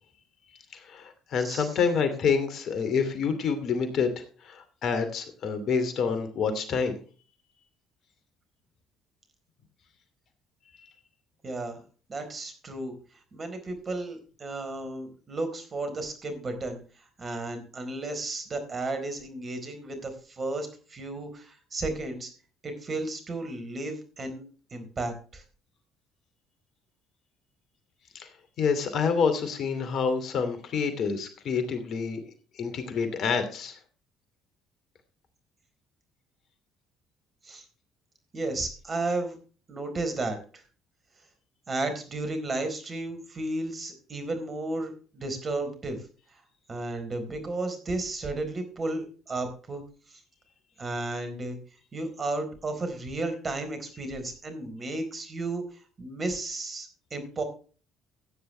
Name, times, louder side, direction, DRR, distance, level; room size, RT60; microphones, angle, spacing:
voice 1, 0.7-6.9 28.1-28.3 28.6-32.2 32.5-33.8, left 5 dB, 55° left, 9 dB, 2.5 m, -27 dB
voice 2, 11.4-11.8 12.1-12.9 13.3-16.8 17.2-22.3 22.6-24.4 24.7-25.4 37.4-37.6 38.3-39.4 39.7-40.6 41.7-46.0 46.7-49.8 50.1-50.2 50.8-51.6 51.9-55.6 56.0-57.4, right 2 dB, 35° right, 7 dB, 4.2 m, -33 dB
15.5 x 9.8 x 3.3 m, 0.38 s
hypercardioid pair, 55°, 0 cm